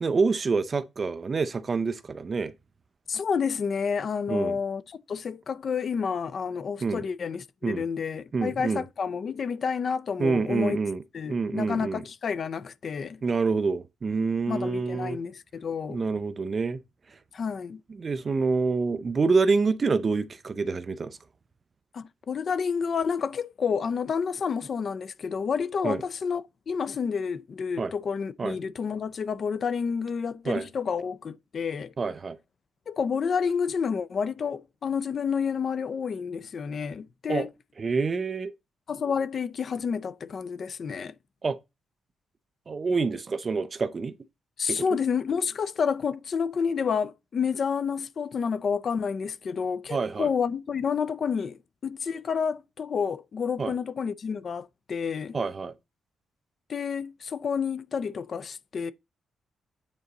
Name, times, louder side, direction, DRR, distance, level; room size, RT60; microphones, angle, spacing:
voice 1, 0.0-2.5 4.3-4.6 6.8-7.0 7.6-7.8 8.3-8.8 10.2-11.0 11.3-12.0 13.2-15.2 15.9-16.8 17.1-17.2 18.0-21.2 25.8-26.0 27.8-27.9 28.4-28.6 30.5-30.7 32.0-32.4 37.3-37.5 37.8-38.5 41.4-41.6 42.7-44.1 44.7-44.8 49.9-50.3 53.6-53.7 55.3-55.7, right 4 dB, 30° right, 0.6 m, -27 dB
voice 2, 3.1-10.8 11.1-13.2 14.5-16.1 17.3-17.8 21.9-31.9 32.9-37.5 38.9-41.1 44.6-55.4 56.7-58.9, left 6 dB, 40° left, 0.5 m, -29 dB
8.9 x 4.0 x 4.0 m
cardioid pair, 150°, 0 cm